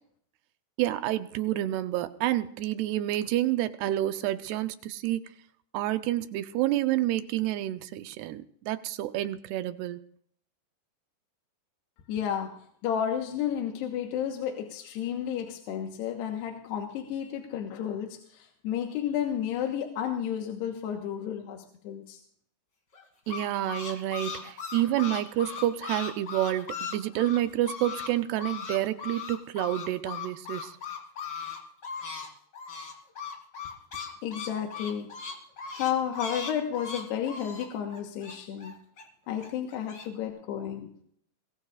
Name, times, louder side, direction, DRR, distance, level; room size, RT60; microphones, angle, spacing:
voice 1, 0.8-5.2 5.7-10.0 23.3-30.8, right 14 dB, 80° right, 10 dB, 2.7 m, -29 dB
voice 2, 12.1-12.6 12.8-22.2 34.2-35.1 35.7-38.7 39.3-40.9, left 9 dB, 80° left, 2 dB, 3.3 m, -32 dB
sound 1, 22.9-28.1 28.3-32.3 32.5-39.0 39.4-40.1, left 6 dB, 30° left, 2.8 m, -38 dB
21.5 x 21.0 x 2.5 m, 0.63 s
omnidirectional pair, 4.9 m